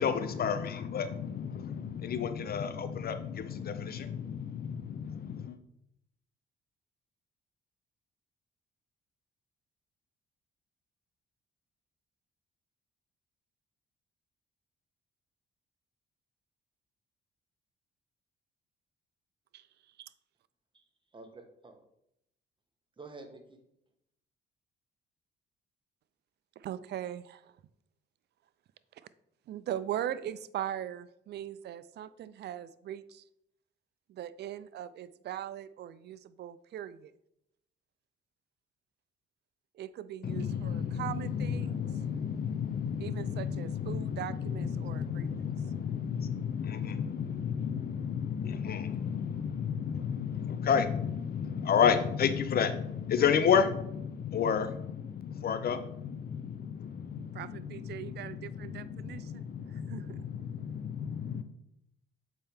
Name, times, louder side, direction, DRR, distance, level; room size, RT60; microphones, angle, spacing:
voice 1, 0.0-5.6 40.2-61.4, left 7 dB, 50° left, 9 dB, 0.5 m, -32 dB
voice 2, 19.5-20.1 26.6-27.6 28.9-29.1 29.5-33.2 34.1-37.1 39.7-41.9 43.0-45.4 57.3-60.3, right 11 dB, 60° right, 14 dB, 0.4 m, -40 dB
voice 3, 21.1-21.9 23.0-23.6, right 3 dB, 25° right, 5 dB, 1.1 m, -49 dB
7.4 x 4.4 x 3.5 m, 0.77 s
cardioid pair, 90°, 20 cm